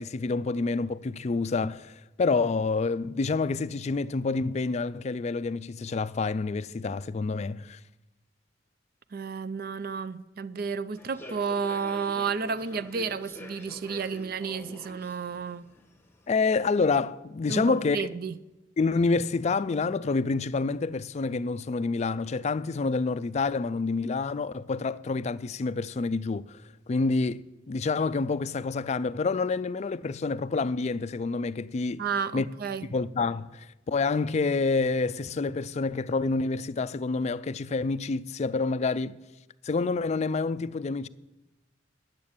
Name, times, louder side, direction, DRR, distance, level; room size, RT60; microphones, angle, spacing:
voice 1, 0.0-7.8 16.3-18.0 18.8-26.6 26.9-32.0 32.3-32.5 32.9-39.2 39.6-41.1, left 4 dB, 35° left, 0.3 m, -28 dB
voice 2, 9.1-15.7 17.5-18.3 32.0-32.9, right 5 dB, 50° right, 0.5 m, -32 dB
Human voice / Subway metro underground, 11.0-16.5, left 1 dB, 10° left, 1.0 m, -47 dB
10.5 x 7.4 x 8.7 m
head